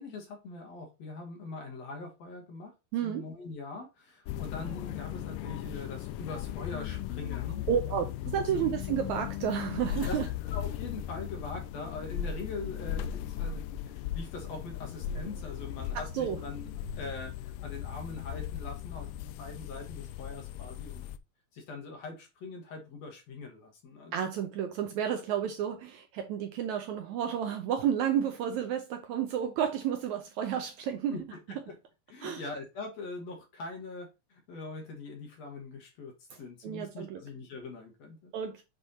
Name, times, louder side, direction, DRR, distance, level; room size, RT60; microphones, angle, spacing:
voice 1, 0.0-2.7 3.0-8.7 10.1-10.2 10.5-16.7 16.9-17.3 17.6-19.1 19.4-21.0 21.5-24.3 31.1-31.8 32.1-36.1 36.4-38.3, left 3 dB, 55° left, 2.3 m, -42 dB
voice 2, 2.9-3.2 7.7-10.3 15.9-16.4 24.1-31.2 32.2-32.4 36.6-37.2 38.3-38.6, right 9 dB, 75° right, 1.8 m, -31 dB
sound 1, 4.3-21.2, left 10 dB, 80° left, 2.0 m, -37 dB
7.9 x 3.4 x 4.1 m
omnidirectional pair, 3.9 m